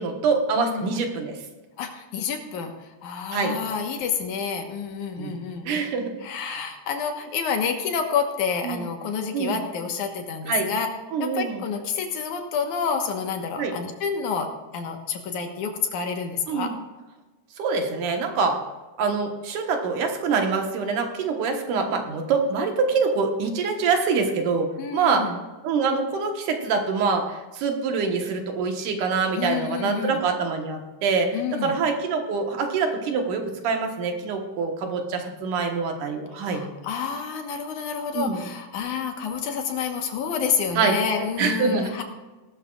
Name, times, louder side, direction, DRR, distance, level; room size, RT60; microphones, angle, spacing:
voice 1, 0.0-1.4 3.3-3.6 5.2-5.4 5.7-6.2 6.5-6.6 8.6-8.8 9.3-9.6 10.5-10.7 11.1-11.6 13.6-13.7 16.5-16.7 17.6-18.6 19.0-25.3 25.6-36.7 38.1-38.5 40.8-41.0 41.4-42.0, right 4 dB, 80° right, 3 dB, 2.9 m, -25 dB
voice 2, 0.6-0.9 1.8-5.7 6.2-10.9 11.2-16.7 24.8-25.4 29.3-30.2 31.3-31.7 36.4-42.0, left 6 dB, 75° left, 4 dB, 2.6 m, -29 dB
19.0 x 12.5 x 2.4 m, 1.2 s
omnidirectional pair, 3.6 m